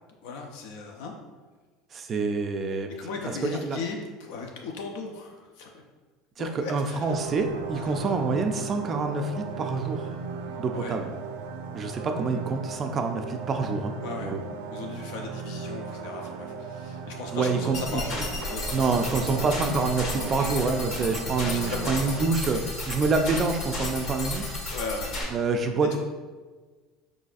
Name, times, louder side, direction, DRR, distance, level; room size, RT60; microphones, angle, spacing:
voice 1, 0.2-1.1 3.0-5.8 6.4-7.1 7.7-8.1 10.7-11.0 14.0-14.3 14.7-19.5 20.1-20.6 21.0-21.1 21.4-22.2 24.7-25.3 25.9-26.0, left 4 dB, 75° left, 2 dB, 0.5 m, -37 dB
voice 2, 1.9-2.9 3.4-3.8 6.4-10.1 10.6-11.1 11.7-13.9 14.2-14.4 17.3-18.2 18.7-24.6 25.3-26.0, right 4 dB, 30° right, 5 dB, 0.3 m, -27 dB
sound 1, 7.1-22.3, right 5 dB, 85° right, 0.5 m, -37 dB
sound 2, 17.7-25.2, left 2 dB, 50° left, 1.5 m, -33 dB
4.7 x 3.9 x 2.4 m, 1.4 s
cardioid pair, 145°, 0 cm